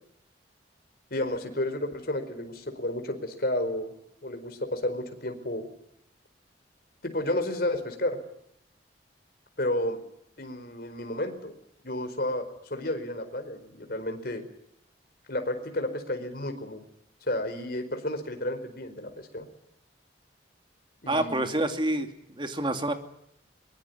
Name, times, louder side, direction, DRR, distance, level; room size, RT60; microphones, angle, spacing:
voice 1, 1.1-3.9 4.2-5.7 7.0-8.2 9.6-10.0 10.4-11.5 11.8-14.5 15.3-16.8 17.2-19.5 21.0-21.5, left 1 dB, 55° left, 7 dB, 4.6 m, -31 dB
voice 2, 21.1-22.9, right 1 dB, 25° right, 7 dB, 2.5 m, -28 dB
23.0 x 22.5 x 9.6 m, 0.73 s
head